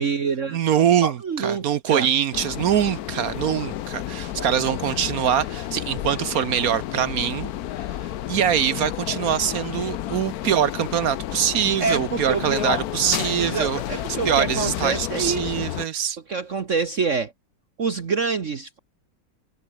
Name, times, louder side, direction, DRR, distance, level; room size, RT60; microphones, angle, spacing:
voice 1, 0.0-2.1 4.4-4.5 11.8-12.6 13.4-15.6 16.3-17.3 17.8-18.8, right 5 dB, 45° right, 1.4 m, -27 dB
voice 2, 0.5-7.5 8.3-13.8 14.2-16.2, right 9 dB, 60° right, 1.0 m, -23 dB
sound 1, 2.3-15.8, left 12 dB, 65° left, 1.1 m, -31 dB
omnidirectional pair, 2.0 m